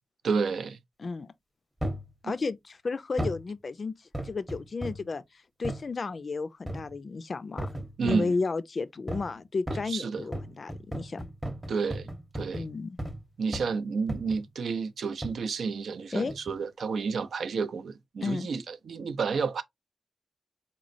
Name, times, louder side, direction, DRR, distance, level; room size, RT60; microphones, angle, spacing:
voice 1, 0.2-0.8 2.2-2.3 8.0-8.3 9.9-10.3 11.7-12.7 13.4-19.6, right 5 dB, 75° right, 0.5 m, -30 dB
voice 2, 1.0-1.3 2.2-3.9 4.2-5.2 5.6-7.7 8.0-11.2 12.5-13.0 16.1-16.3 18.2-18.5, left 4 dB, 45° left, 0.4 m, -32 dB
sound 1, 1.8-2.1 3.2-3.5 4.1-5.1 5.6-5.9 6.7-7.0 7.6-8.4 9.1-9.4 9.7-13.2 13.5-13.8 14.1-14.5 15.2-15.4 16.3-16.6 17.2-17.3, right 1 dB, 10° right, 0.8 m, -36 dB
4.2 x 3.0 x 2.6 m
wide cardioid pair, 120°, 0 cm